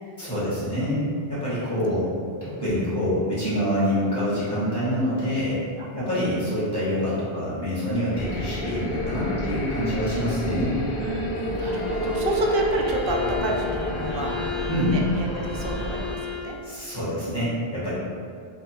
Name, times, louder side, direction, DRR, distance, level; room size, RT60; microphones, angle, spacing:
voice 1, 0.2-2.1 2.4-5.6 5.9-10.8 14.7-15.0 16.6-17.9, equal, 25° left, -12 dB, 1.4 m, -26 dB
voice 2, 1.6-1.9 5.8-6.1 11.0-14.3 14.9-16.6, right 2 dB, 65° right, 0 dB, 0.7 m, -29 dB
sound 1, 8.1-16.2, left 1 dB, 85° left, 0.9 m, -30 dB
Bowed string instrument, 11.6-16.6, left 6 dB, 55° left, 1.3 m, -35 dB
3.4 x 2.1 x 4.2 m, 2.2 s
omnidirectional pair, 1.1 m